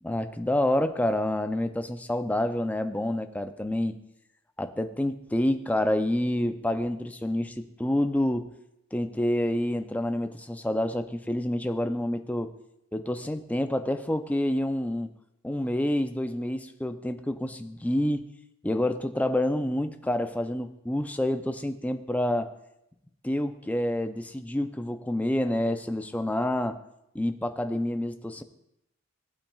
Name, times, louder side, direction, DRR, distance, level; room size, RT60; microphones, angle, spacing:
voice 1, 0.0-4.0 4.6-8.5 8.9-12.5 12.9-15.1 15.4-18.2 18.6-22.5 23.2-26.7 27.1-28.4, left 1 dB, 5° left, 8 dB, 0.4 m, -28 dB
17.0 x 8.6 x 2.3 m, 0.83 s
head